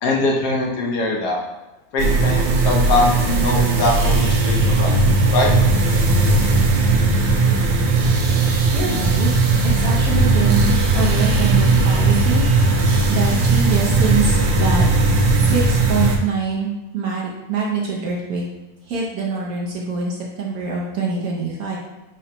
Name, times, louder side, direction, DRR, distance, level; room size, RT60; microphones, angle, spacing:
voice 1, 0.0-1.4 1.9-4.9 5.3-5.5, left 2 dB, 65° left, -1 dB, 1.2 m, -21 dB
sound 1, 2.0-16.2, right 3 dB, 90° right, 1.4 m, -17 dB
voice 2, 8.7-9.3 9.6-14.8 15.3-18.4 18.9-21.8, right 4 dB, 65° right, -3 dB, 1.0 m, -25 dB
4.9 x 2.2 x 4.3 m, 1.1 s
omnidirectional pair, 2.0 m